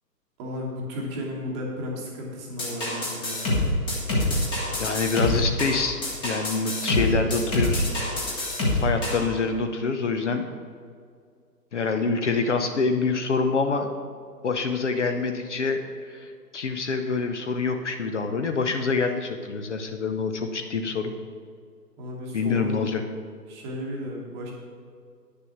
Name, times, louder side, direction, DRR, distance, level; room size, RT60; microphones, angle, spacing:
voice 1, 0.4-3.5 22.0-22.8 23.5-24.5, left 1 dB, 15° right, -1 dB, 1.1 m, -34 dB
sound 1, 2.6-9.2, left 1 dB, 10° left, 1.0 m, -26 dB
voice 2, 4.8-7.9 8.7-10.5 11.7-13.9 14.4-15.8 16.1-21.1 22.3-23.0, left 4 dB, 45° left, 7 dB, 0.7 m, -26 dB
9.5 x 6.8 x 5.8 m, 2.2 s
figure-of-eight pair, 140°, 49 cm